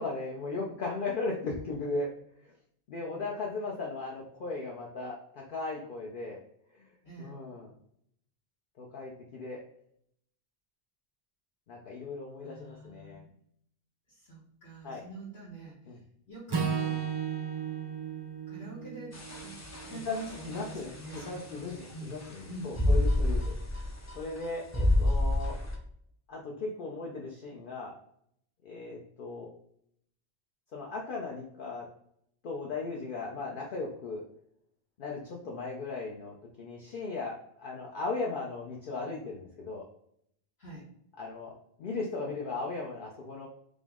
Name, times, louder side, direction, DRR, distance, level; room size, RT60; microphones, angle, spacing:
voice 1, 0.0-2.1 2.4-2.5 2.9-6.4 6.7-6.9 7.2-7.7 8.8-9.6 11.7-13.2 14.8-15.0 15.9-16.0 19.9-20.2 20.5-20.9 21.2-23.9 24.1-25.6 26.3-27.9 28.6-29.5 30.7-31.8 32.4-34.2 35.0-39.8 41.2-41.5 41.8-43.5, left 3 dB, 60° left, -2 dB, 0.8 m, -37 dB
voice 2, 7.0-7.4 12.4-13.3 14.1-15.7 16.3-17.1 18.5-19.6 19.8-22.1 22.5-23.0 40.6-40.9, right 2 dB, 80° left, -9 dB, 1.7 m, -45 dB
Acoustic guitar / Strum, 16.5-20.8, right 7 dB, 35° right, 0.4 m, -35 dB
sound 1, 19.1-25.7, left 1 dB, 20° left, 0.5 m, -30 dB
5.1 x 2.0 x 3.5 m, 0.70 s
omnidirectional pair, 1.1 m